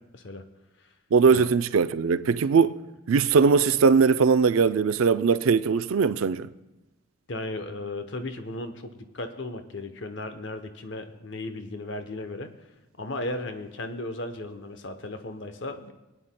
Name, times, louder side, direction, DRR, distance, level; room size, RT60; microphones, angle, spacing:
voice 1, 1.1-2.8 3.1-6.5, right 5 dB, 80° right, 0.4 m, -20 dB
voice 2, 7.3-12.5 13.0-15.9, left 2 dB, 60° left, 0.8 m, -35 dB
26.5 x 9.2 x 2.2 m
head